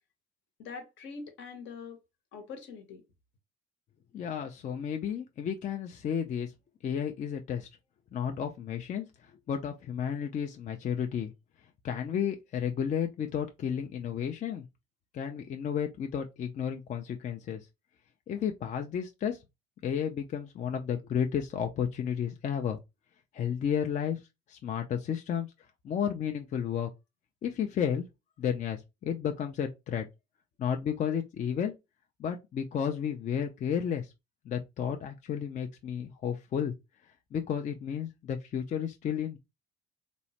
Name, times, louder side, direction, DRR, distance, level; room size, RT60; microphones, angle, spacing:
voice 1, 0.6-2.0 2.3-3.0, left 5 dB, 65° left, 0.9 m, -43 dB
voice 2, 4.1-6.5 6.8-7.7 8.1-11.3 11.8-14.6 15.1-17.6 18.3-19.4 19.8-22.8 23.3-24.2 24.5-25.5 25.8-26.9 27.4-28.1 28.4-30.1 30.6-31.7 32.2-34.1 34.5-36.7 37.3-39.4, left 8 dB, 35° left, 0.4 m, -32 dB
3.0 x 2.0 x 2.7 m
cardioid pair, 100°, 21 cm